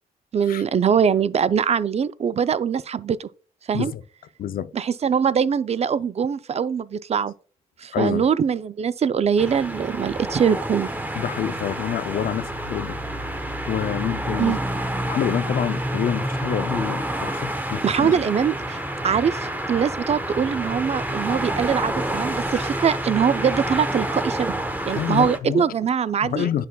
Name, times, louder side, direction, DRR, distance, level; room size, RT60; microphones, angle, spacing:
voice 1, 0.3-3.3 3.7-3.9 4.7-7.3 7.8-10.9 14.4-14.6 17.8-26.7, right 7 dB, 45° right, 0.4 m, -22 dB
voice 2, 4.4-4.7 7.9-8.3 11.2-13.0 13.7-14.6 15.1-18.2 24.9-25.8 26.2-26.7, left 10 dB, 75° left, 0.4 m, -27 dB
sound 1, 9.4-25.4, right 1 dB, 10° right, 0.9 m, -28 dB
9.2 x 5.6 x 2.2 m
cardioid pair, 70°, 15 cm